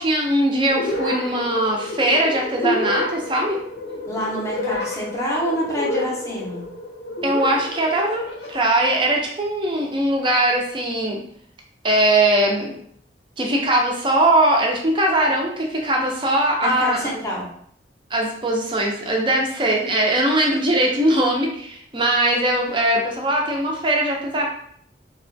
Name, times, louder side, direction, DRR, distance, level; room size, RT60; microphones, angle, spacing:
voice 1, 0.0-3.6 7.2-11.2 11.8-12.7 13.4-17.2 18.1-24.5, right 1 dB, 25° right, 0 dB, 0.5 m, -20 dB
sound 1, 0.7-8.7, left 2 dB, 70° left, 0.6 m, -29 dB
voice 2, 4.1-6.6 16.6-17.5, equal, 15° left, -4 dB, 0.7 m, -27 dB
2.9 x 2.2 x 2.6 m, 0.64 s
head